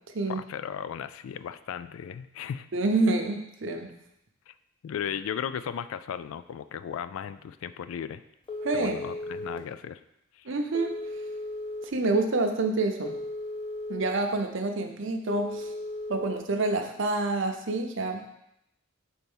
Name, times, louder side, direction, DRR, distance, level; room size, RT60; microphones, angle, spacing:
voice 1, 0.3-2.7 4.5-4.6 4.8-8.2 8.7-10.0 10.4-10.5, left 8 dB, 80° left, 13 dB, 0.3 m, -36 dB
voice 2, 2.7-3.9 8.6-9.0 10.5-11.1 11.9-13.1 13.9-15.7 16.1-18.3, right 2 dB, 65° right, 4 dB, 0.7 m, -27 dB
Telephone, 8.5-9.6 10.7-11.8 13.0-14.1 15.3-16.4, left 2 dB, 25° left, 0.5 m, -36 dB
4.4 x 4.0 x 5.4 m, 0.81 s
head